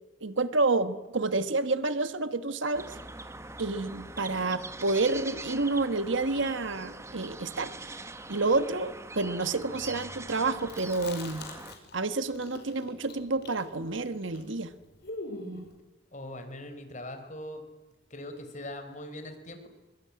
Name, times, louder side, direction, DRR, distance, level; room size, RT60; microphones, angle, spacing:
voice 1, 0.2-3.0 3.6-8.0 8.3-11.4 11.9-14.7, right 3 dB, 70° right, 12 dB, 1.4 m, -29 dB
sound 1, 2.7-11.7, right 2 dB, 15° right, 1.1 m, -43 dB
sound 2, 9.5-12.7, equal, 40° right, 2.6 m, -56 dB
Chewing mastication, 10.6-12.1 12.3-15.7, left 2 dB, 50° left, 5.6 m, -42 dB
voice 2, 16.1-17.6 18.1-19.7, left 1 dB, 35° left, 7 dB, 4.3 m, -41 dB
23.5 x 23.5 x 9.7 m, 1.1 s
head